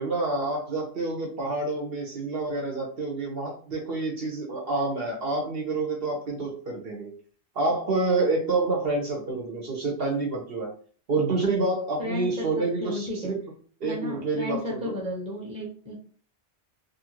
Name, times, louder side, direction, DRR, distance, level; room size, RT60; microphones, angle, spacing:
voice 1, 0.0-7.1 7.5-10.7 11.1-13.3 13.8-15.0, right 3 dB, 60° right, 0 dB, 0.9 m, -28 dB
voice 2, 12.0-13.2 13.8-15.9, left 2 dB, 5° right, -3 dB, 0.8 m, -34 dB
2.7 x 2.5 x 2.9 m, 0.43 s
omnidirectional pair, 1.2 m